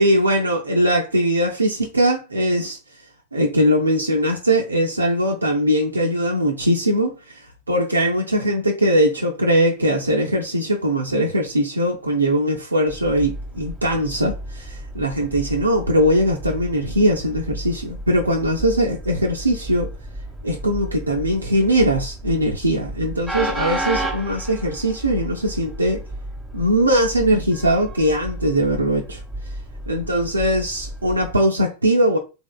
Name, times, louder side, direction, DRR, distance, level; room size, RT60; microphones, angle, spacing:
voice 1, 0.0-2.8 3.3-7.4 7.7-19.9 20.4-26.0 26.5-29.2 29.9-32.2, equal, 80° right, 0.4 m, -20 dB
Train, 12.9-31.4, right 1 dB, ahead, 0.9 m, -33 dB
3.4 x 3.0 x 2.2 m
figure-of-eight pair, 90°, 0 cm